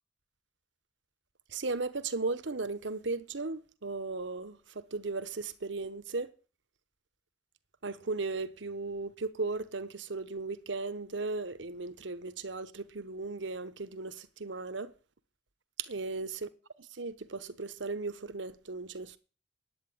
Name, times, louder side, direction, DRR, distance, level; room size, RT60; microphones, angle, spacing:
voice 1, 1.5-6.3 7.8-14.9 15.8-16.5 17.0-19.2, right 3 dB, 85° right, 1.1 m, -36 dB
10.0 x 9.1 x 8.7 m
head